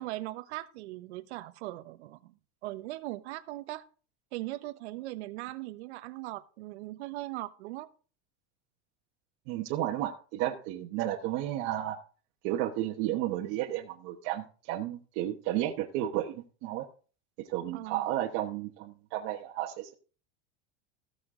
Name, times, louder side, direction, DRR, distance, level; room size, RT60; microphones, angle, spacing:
voice 1, 0.0-2.3 2.6-3.8 4.3-7.9 17.7-18.0, right 17 dB, 85° right, 1.0 m, -39 dB
voice 2, 9.5-12.0 12.4-16.8 17.4-19.9, right 13 dB, 50° right, 1.2 m, -32 dB
15.0 x 6.8 x 3.8 m
supercardioid pair, 155°, 33 cm